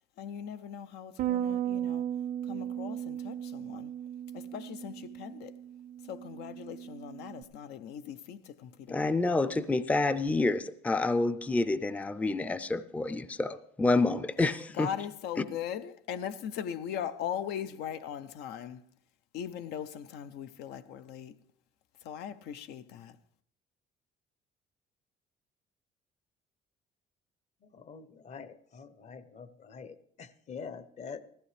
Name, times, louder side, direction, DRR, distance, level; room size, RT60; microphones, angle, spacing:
voice 1, 0.2-2.0 2.5-3.9 4.3-5.5 6.1-9.2 14.8-18.8 19.3-21.3 22.0-23.1, left 9 dB, 85° left, 0.6 m, -39 dB
Bass guitar, 1.2-7.4, right 10 dB, 55° right, 0.5 m, -36 dB
voice 2, 8.9-14.9 15.4-15.5, left 3 dB, 10° left, 0.4 m, -28 dB
voice 3, 27.9-31.2, left 5 dB, 40° left, 0.7 m, -45 dB
15.0 x 14.0 x 3.3 m
cardioid pair, 110°, 17 cm